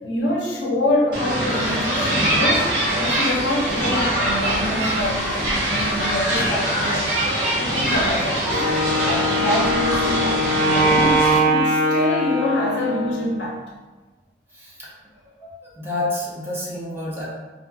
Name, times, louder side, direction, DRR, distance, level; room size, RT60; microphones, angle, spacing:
voice 1, 0.0-2.7 3.0-7.1 7.6-8.6 9.0-13.6, left 1 dB, 85° left, -3 dB, 0.6 m, -25 dB
sound 1, 1.1-11.4, right 1 dB, 80° right, 1.1 m, -23 dB
Wind instrument woodwind instrument, 8.5-13.3, equal, 5° left, 1.1 m, -21 dB
voice 2, 14.5-14.9 15.4-17.3, left 2 dB, 15° right, -7 dB, 0.6 m, -29 dB
2.5 x 2.5 x 2.3 m, 1.3 s
head